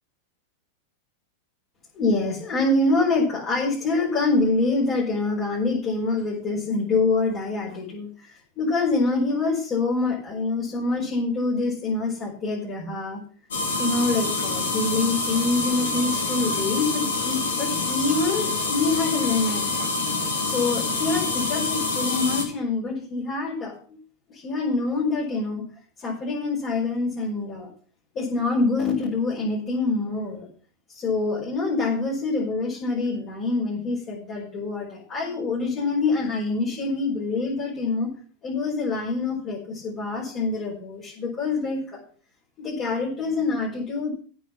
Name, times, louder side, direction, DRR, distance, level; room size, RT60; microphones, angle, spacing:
voice 1, 1.9-13.2 13.8-19.9 20.4-24.0 24.3-25.6 26.0-27.7 28.1-30.5 30.9-38.1 38.4-42.0 42.6-44.1, left 3 dB, 30° left, -5 dB, 5.4 m, -25 dB
sound 1, 13.5-22.4, left 3 dB, 65° left, 3.1 m, -26 dB
15.5 x 6.1 x 5.9 m, 0.42 s
figure-of-eight pair, 90°, 0 cm